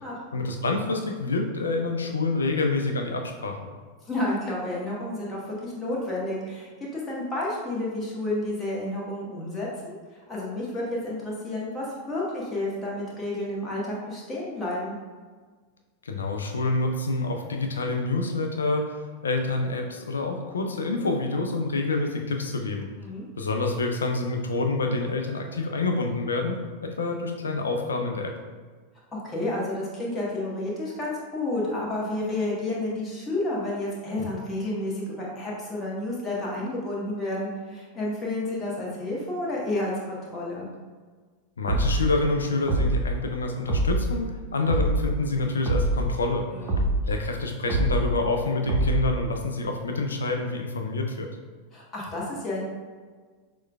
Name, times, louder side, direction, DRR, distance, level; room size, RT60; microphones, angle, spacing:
voice 1, 0.3-3.6 16.0-19.0 19.2-22.9 23.4-28.3 41.6-46.5 47.1-51.3, left 3 dB, 70° left, 3 dB, 0.5 m, -27 dB
voice 2, 4.0-10.0 10.3-15.0 23.0-23.2 29.2-40.7 46.5-46.9 51.7-52.6, left 1 dB, 20° left, -5 dB, 1.1 m, -30 dB
sound 1, 41.7-42.1 42.7-43.1 43.7-44.1 44.7-45.1 45.7-46.1 46.7-47.1 47.7-48.1 48.7-49.1, right 1 dB, 30° right, 0.8 m, -24 dB
6.1 x 2.3 x 2.3 m, 1.5 s
figure-of-eight pair, 90°, 0 cm